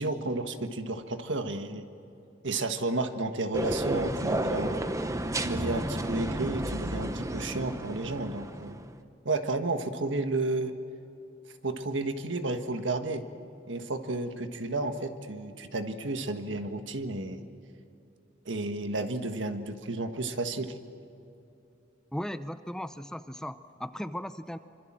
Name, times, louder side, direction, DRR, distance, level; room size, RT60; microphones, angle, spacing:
voice 1, 0.0-1.9 2.4-4.9 5.4-8.8 9.2-10.8 11.6-13.3 13.7-17.4 18.4-20.7, right 2 dB, 70° right, 7 dB, 1.6 m, -32 dB
sound 1, 3.5-8.9, right 1 dB, 15° right, 1.0 m, -32 dB
voice 2, 22.1-24.6, equal, 5° left, 11 dB, 0.6 m, -37 dB
26.0 x 26.0 x 7.5 m, 2.8 s
head